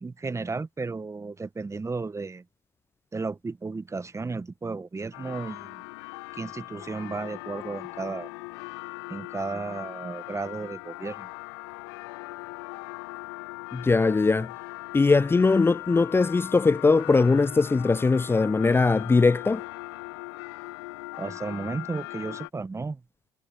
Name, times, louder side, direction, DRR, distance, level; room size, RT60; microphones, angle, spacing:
voice 1, 0.0-2.4 3.1-5.8 6.3-8.3 9.1-11.3 21.2-23.0, right 4 dB, 20° right, 1.4 m, -34 dB
sound 1, 5.1-22.5, left 26 dB, 70° left, 1.7 m, -40 dB
voice 2, 13.7-14.5 14.9-19.6, left 4 dB, 15° left, 0.4 m, -21 dB
hypercardioid pair, 55°, 14 cm